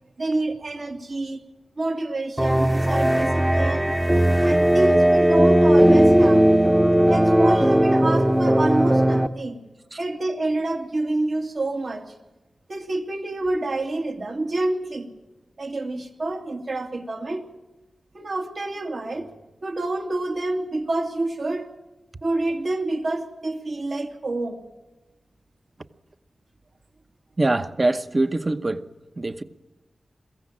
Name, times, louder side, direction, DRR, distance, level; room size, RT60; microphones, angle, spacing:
voice 1, 0.2-1.4 1.8-3.9 4.4-6.5 7.1-9.6 10.0-12.0 12.7-15.1 15.6-17.5 18.1-19.3 19.6-21.7 22.2-24.6, right 2 dB, 60° right, 2.6 m, -27 dB
sound 1, 2.4-9.3, right 1 dB, 10° right, 0.9 m, -17 dB
voice 2, 27.4-28.8 29.2-29.4, right 2 dB, 35° right, 1.0 m, -23 dB
22.5 x 15.5 x 8.8 m
wide cardioid pair, 70°, 0 cm